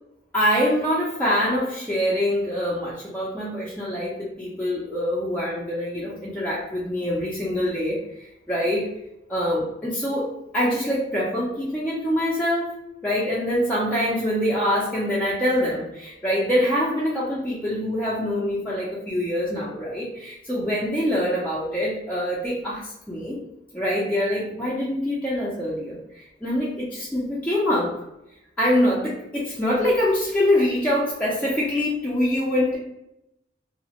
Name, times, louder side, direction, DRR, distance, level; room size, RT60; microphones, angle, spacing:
voice 1, 0.3-8.9 9.3-12.8 13.0-23.4 23.7-28.0 28.6-32.8, equal, 5° left, -8 dB, 0.4 m, -24 dB
2.8 x 2.0 x 2.8 m, 0.85 s
head